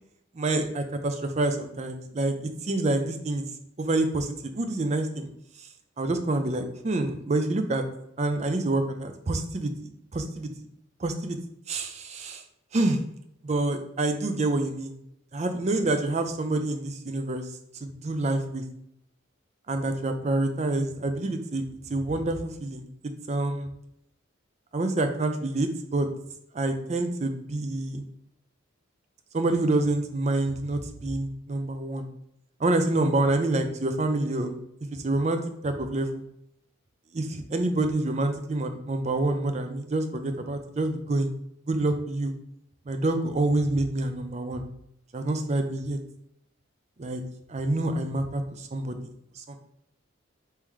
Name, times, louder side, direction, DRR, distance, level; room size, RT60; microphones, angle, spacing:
voice 1, 0.3-3.4 3.8-5.3 5.6-5.7 6.0-7.8 8.2-10.5 11.0-11.4 11.7-12.4 12.7-13.0 13.4-14.9 15.3-17.5 17.8-18.6 19.7-21.6 21.9-22.9 23.3-23.7 24.7-26.1 26.5-28.0 29.3-32.1 32.6-34.6 34.9-36.2 37.1-41.3 41.7-42.3 42.9-44.7 45.1-46.0 47.0-47.2 47.5-49.6, right 2 dB, 35° right, 7 dB, 0.4 m, -27 dB
3.7 x 2.9 x 4.6 m, 0.75 s
head